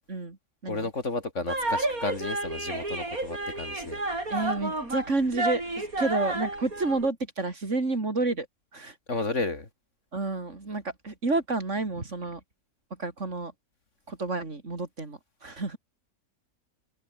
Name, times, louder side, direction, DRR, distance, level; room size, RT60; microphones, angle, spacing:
voice 1, 0.7-4.0 9.1-9.7, left 3 dB, 55° left, 3.5 m, -32 dB
sound 1, 1.5-7.1, right 2 dB, 80° right, 7.0 m, -31 dB
voice 2, 4.3-8.5 8.7-9.0 10.1-12.4 13.0-13.5 14.1-15.8, right 3 dB, 55° right, 3.6 m, -30 dB
omnidirectional pair, 1.5 m